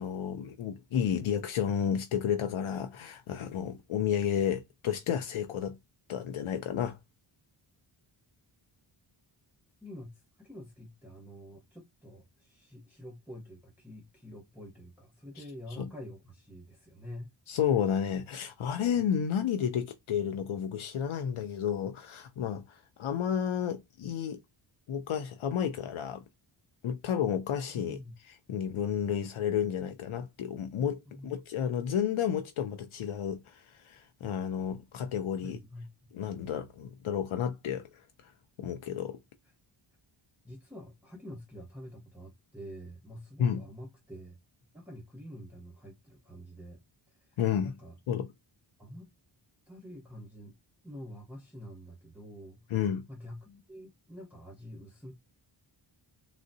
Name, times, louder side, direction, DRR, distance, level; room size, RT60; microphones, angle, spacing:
voice 1, 0.0-5.8 6.1-7.0 15.8-15.9 17.5-24.4 24.9-26.2 26.8-28.0 28.5-35.6 36.1-37.8 38.6-39.2 43.4-43.6 47.4-47.7 48.1-48.3 52.7-53.0, left 8 dB, 70° left, 0.6 m, -31 dB
voice 2, 9.8-17.3 27.7-28.1 31.1-31.3 35.4-36.1 40.4-44.4 44.7-46.8 47.1-48.0 48.8-49.1 49.7-50.6 50.8-52.6 53.1-55.1, equal, 5° right, 0.9 m, -47 dB
3.8 x 2.1 x 2.6 m
wide cardioid pair, 80°, 50 cm